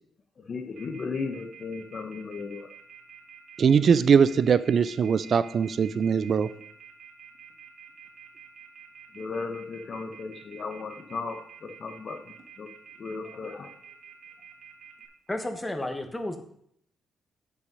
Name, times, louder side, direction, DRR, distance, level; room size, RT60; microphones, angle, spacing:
voice 1, 0.5-2.7 9.1-12.7 13.0-13.7, left 4 dB, 45° left, 5 dB, 1.0 m, -36 dB
Telephone, 0.8-15.1, right 8 dB, 75° right, 1.6 m, -48 dB
voice 2, 3.6-6.5, right 6 dB, 50° right, 15 dB, 0.5 m, -21 dB
voice 3, 15.3-16.4, left 1 dB, 15° left, 6 dB, 1.3 m, -32 dB
8.3 x 5.9 x 5.3 m, 0.68 s
cardioid pair, 90°, 0 cm